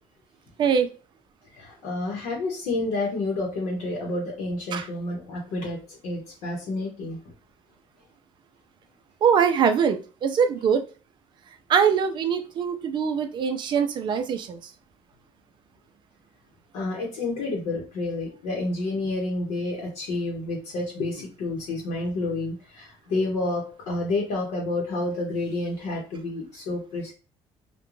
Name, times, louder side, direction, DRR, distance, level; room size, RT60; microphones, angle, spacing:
voice 1, 1.5-7.2 16.7-27.1, left 2 dB, 75° left, -2 dB, 0.8 m, -29 dB
voice 2, 9.2-10.9 11.7-14.7, right 7 dB, 40° right, 7 dB, 0.4 m, -23 dB
2.4 x 2.2 x 3.0 m, 0.35 s
cardioid pair, 150°, 11 cm